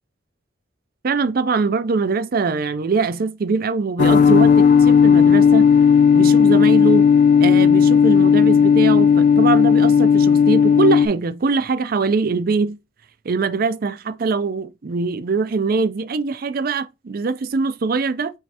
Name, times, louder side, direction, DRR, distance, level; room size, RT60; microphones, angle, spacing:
voice 1, 1.0-5.7 6.1-7.1 7.4-12.8 13.2-18.3, right 4 dB, 50° right, 0.4 m, -22 dB
sound 1, 4.0-11.1, left 7 dB, 40° left, 0.3 m, -13 dB
5.8 x 3.2 x 2.8 m
head